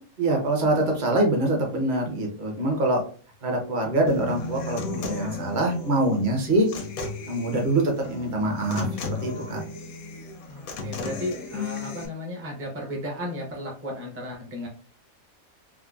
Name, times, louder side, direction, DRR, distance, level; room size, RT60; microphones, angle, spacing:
voice 1, 0.2-3.0 3.4-6.7 7.3-8.9 9.2-9.6, right 1 dB, 40° right, 1 dB, 0.8 m, -24 dB
Human voice / Acoustic guitar, 4.1-12.1, left 3 dB, 75° left, 1.1 m, -35 dB
voice 2, 10.5-14.7, equal, 15° right, -1 dB, 0.4 m, -34 dB
3.7 x 2.0 x 2.3 m, 0.39 s
omnidirectional pair, 1.5 m